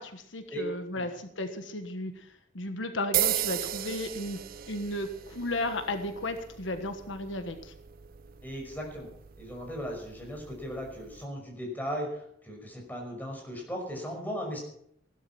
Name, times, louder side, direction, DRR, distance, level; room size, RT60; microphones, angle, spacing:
voice 1, 0.0-4.4 4.7-7.7, left 1 dB, 85° left, 8 dB, 1.4 m, -34 dB
sound 1, 3.1-11.2, right 12 dB, 50° right, 0.5 m, -36 dB
voice 2, 8.4-9.1 9.4-14.6, equal, 10° left, 0 dB, 5.6 m, -37 dB
16.0 x 12.0 x 5.8 m, 0.69 s
head